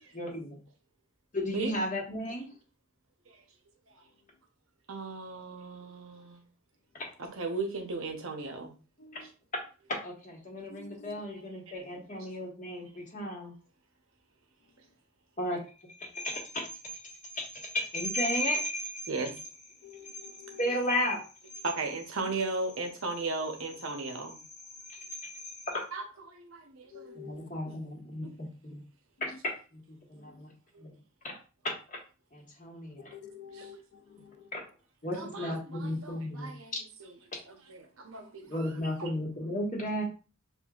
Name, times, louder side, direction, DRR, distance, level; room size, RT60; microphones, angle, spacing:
voice 1, 0.1-0.6 1.3-2.5 7.0-7.1 9.1-9.2 9.9-13.5 15.4-15.6 16.1-16.6 17.3-19.0 20.6-21.2 24.9-25.8 27.1-28.3 28.6-28.8 29.7-29.8 30.1-30.5 30.8-30.9 31.2-31.4 31.6-31.8 32.3-33.1 34.5-34.6 35.0-36.5 38.5-40.0, left 1 dB, 35° left, 1.2 m, -34 dB
voice 2, 4.9-6.4 7.2-8.7 9.2-9.3 10.9-11.0 11.9-12.1 19.1-19.3 21.6-24.4 25.9-27.8 28.2-28.3 30.7-30.8 33.5-33.7 35.1-37.2 37.5-39.1, right 3 dB, 75° right, 0.8 m, -37 dB
voice 3, 9.0-9.3 10.7-11.2 19.8-20.7 26.9-27.5 29.2-29.3 30.2-30.4 33.1-34.5, left 6 dB, 50° left, 0.5 m, -49 dB
6.8 x 2.5 x 2.4 m
head